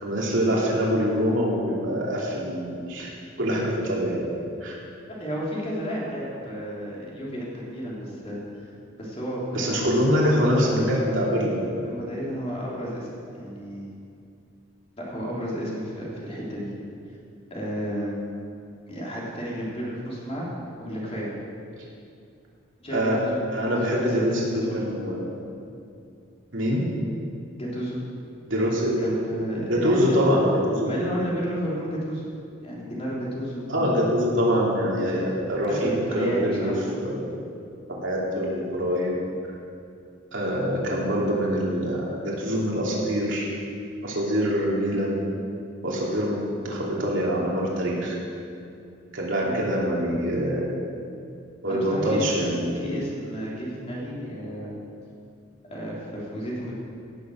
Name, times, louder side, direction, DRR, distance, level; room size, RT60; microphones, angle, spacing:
voice 1, 0.0-3.1 3.4-4.2 4.6-4.7 9.5-11.7 22.9-23.2 23.5-25.3 26.5-26.9 28.5-29.0 29.7-31.3 33.7-37.3 38.0-39.1 40.3-43.5 44.0-45.2 45.8-48.1 49.1-50.8 51.6-52.8, equal, 65° right, -4 dB, 2.7 m, -24 dB
voice 2, 5.2-8.7 9.0-9.9 11.8-13.1 13.3-13.9 15.0-16.7 17.5-18.2 18.9-20.5 20.8-21.3 22.8-23.4 23.8-24.8 27.6-28.0 28.5-28.7 29.0-30.2 30.9-32.3 32.6-33.9 35.7-36.8 49.4-49.6 51.7-52.3 52.7-54.7 55.7-56.7, equal, 30° left, -5 dB, 3.1 m, -32 dB
17.0 x 7.1 x 6.4 m, 2.5 s
head